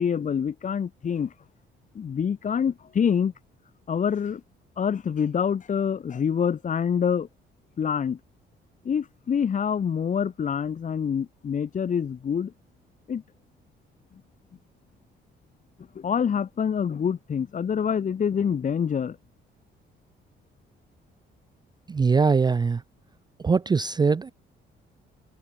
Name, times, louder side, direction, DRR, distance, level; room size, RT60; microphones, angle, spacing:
voice 1, 0.0-1.3 1.9-3.3 3.9-4.4 4.8-7.3 7.8-8.2 8.8-12.5 13.1-13.2 15.9-19.2, left 7 dB, 40° left, 0.8 m, -26 dB
voice 2, 21.9-22.8 23.4-24.3, right 5 dB, 20° right, 0.4 m, -22 dB
cardioid pair, 90°, 20 cm